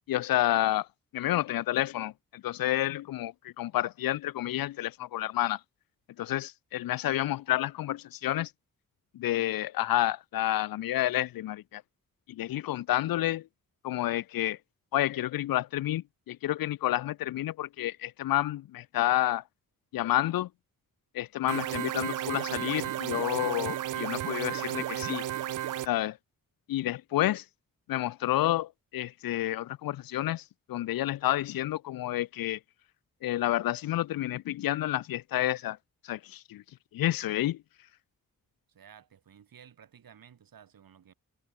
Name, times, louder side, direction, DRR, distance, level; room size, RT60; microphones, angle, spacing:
voice 1, 0.1-0.9 1.1-5.6 6.2-8.5 9.1-11.8 12.3-13.5 13.8-14.6 14.9-19.4 19.9-20.5 21.1-25.2 25.9-26.2 26.7-27.4 27.9-32.6 33.2-35.8 36.0-36.6 36.9-37.6, left 14 dB, 85° left, 0.5 m, -29 dB
sound 1, 21.5-25.9, right 12 dB, 65° right, 0.5 m, -33 dB
voice 2, 38.7-41.1, right 8 dB, 90° right, 5.3 m, -54 dB
wide cardioid pair, 140°, 34 cm